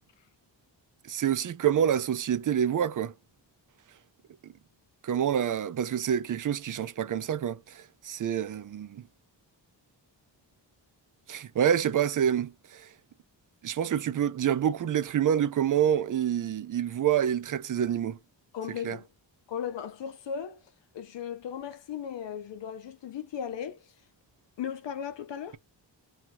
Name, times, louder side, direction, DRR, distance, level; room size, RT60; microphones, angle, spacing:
voice 1, 1.1-3.1 5.0-9.0 11.3-12.9 13.6-18.2 18.8-19.0, right 9 dB, 45° right, 0.5 m, -27 dB
voice 2, 18.5-19.1 19.5-20.6 20.9-23.8 24.6-25.6, left 8 dB, 75° left, 0.6 m, -36 dB
2.7 x 2.4 x 2.9 m
cardioid pair, 80°, 44 cm